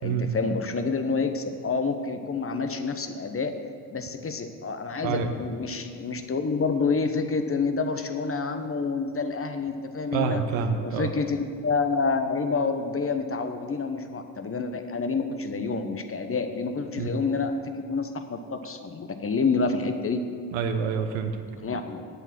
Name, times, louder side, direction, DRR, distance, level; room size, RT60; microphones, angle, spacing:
voice 1, 0.0-3.5 3.9-10.4 10.8-20.2 21.6-22.0, left 4 dB, 25° left, 7 dB, 0.9 m, -28 dB
voice 2, 10.1-11.1 17.0-17.2 20.5-21.4, right 6 dB, 70° right, 7 dB, 1.0 m, -27 dB
8.1 x 8.0 x 6.0 m, 2.3 s
hypercardioid pair, 45°, 48 cm